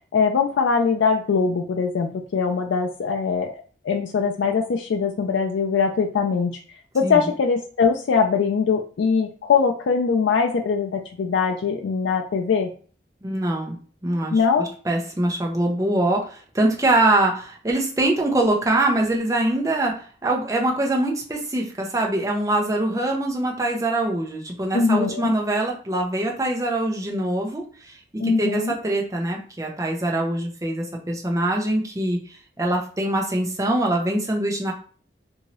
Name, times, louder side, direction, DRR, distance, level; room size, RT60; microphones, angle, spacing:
voice 1, 0.1-3.5 3.8-6.6 6.9-12.7 14.3-14.7 24.7-25.3 28.2-28.7, left 5 dB, 90° left, 2 dB, 0.4 m, -22 dB
voice 2, 13.2-13.8 14.0-14.4 14.8-27.9 28.2-32.2 32.6-34.7, right 1 dB, 20° right, 0 dB, 0.6 m, -23 dB
2.7 x 2.7 x 3.0 m, 0.41 s
head